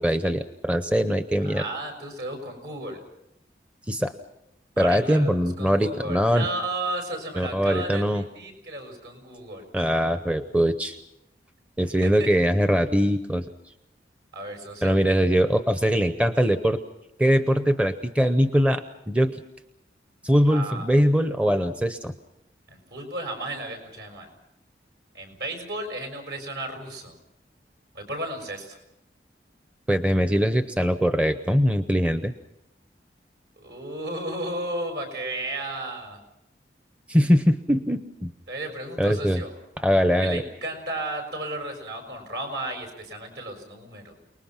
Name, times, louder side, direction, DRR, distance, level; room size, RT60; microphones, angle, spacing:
voice 1, 0.0-1.6 3.9-4.1 4.8-6.5 7.4-8.2 9.7-11.0 11.8-13.5 14.8-16.8 17.2-19.4 20.2-22.1 29.9-32.3 37.1-38.3 39.0-39.4 39.8-40.4, equal, 5° right, 9 dB, 0.7 m, -22 dB
voice 2, 1.4-3.0 4.8-9.6 12.0-12.3 14.3-15.0 20.5-21.0 22.7-24.3 25.1-27.1 27.9-28.8 33.6-36.2 38.5-39.5 40.2-44.1, right 1 dB, 70° right, 4 dB, 6.4 m, -34 dB
29.0 x 20.0 x 6.0 m, 0.84 s
head